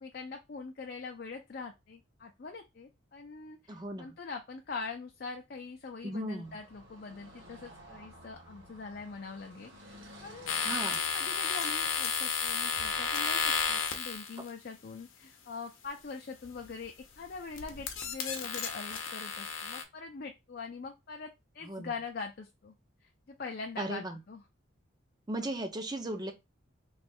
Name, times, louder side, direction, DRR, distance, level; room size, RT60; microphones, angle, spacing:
voice 1, 0.0-10.5 10.9-22.7 23.0-24.4, left 4 dB, 45° left, 0.4 m, -43 dB
voice 2, 3.7-4.2 6.0-6.6 10.6-11.0 21.6-21.9 23.8-24.2 25.3-26.3, right 1 dB, 20° right, 0.4 m, -36 dB
Car passing by / Traffic noise roadway noise, 6.4-11.5, equal, 70° right, 1.3 m, -53 dB
sound 1, 10.5-14.5 16.4-16.8 17.2-19.8, left 5 dB, 80° left, 0.7 m, -32 dB
3.2 x 2.3 x 4.3 m
head